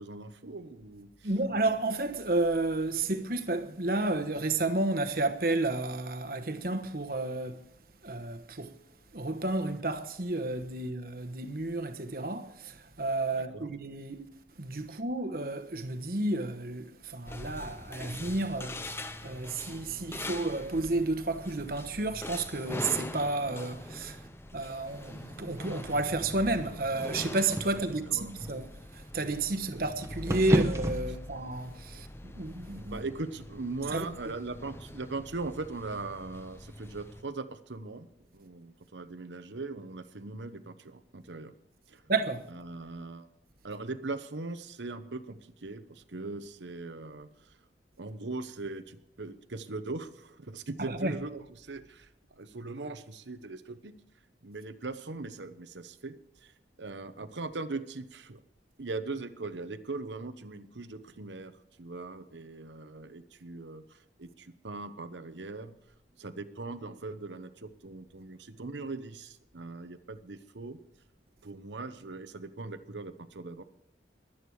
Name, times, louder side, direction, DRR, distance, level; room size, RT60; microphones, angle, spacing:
voice 1, 0.0-1.3 13.3-13.7 14.9-15.0 27.7-28.3 31.9-32.1 32.9-41.5 41.9-42.0 42.5-43.3 43.6-47.6 48.0-53.9 54.4-56.5 56.8-58.4 58.8-65.7 66.2-70.8 71.4-73.6, right 3 dB, 85° right, 1.0 m, -40 dB
voice 2, 1.2-7.6 8.0-8.8 9.1-14.3 14.6-24.2 24.5-33.0 33.9-34.0 42.1-42.4 50.8-51.1, right 2 dB, 55° right, 1.2 m, -31 dB
sound 1, 17.3-37.2, left 1 dB, 15° left, 0.6 m, -43 dB
sound 2, 24.1-31.0, right 1 dB, 15° right, 1.1 m, -35 dB
22.5 x 8.9 x 4.8 m
head